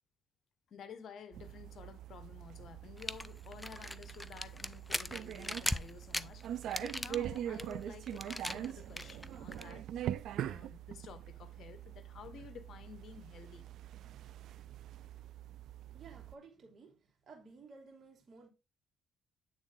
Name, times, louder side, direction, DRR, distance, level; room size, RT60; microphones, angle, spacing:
voice 1, 0.7-6.5 6.8-10.0 10.4-13.7, left 7 dB, 65° left, 1.0 m, -52 dB
sound 1, 1.3-16.4, right 11 dB, 80° right, 0.4 m, -43 dB
sound 2, 3.0-9.7, left 1 dB, 10° left, 0.4 m, -40 dB
voice 2, 15.9-17.0 17.3-18.5, right 4 dB, 45° right, 2.5 m, -55 dB
8.6 x 3.7 x 3.7 m
cardioid pair, 90°, 0 cm